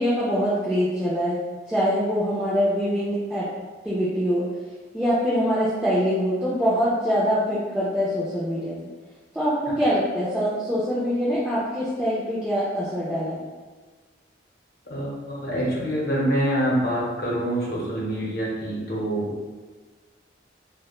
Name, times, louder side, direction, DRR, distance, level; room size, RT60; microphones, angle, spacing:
voice 1, 0.0-1.4 1.7-3.5 3.8-4.5 4.9-8.8 9.3-13.4, equal, 5° right, -11 dB, 0.4 m, -24 dB
voice 2, 14.9-19.3, right 1 dB, 50° left, -5 dB, 0.8 m, -26 dB
3.1 x 2.1 x 2.3 m, 1.4 s
head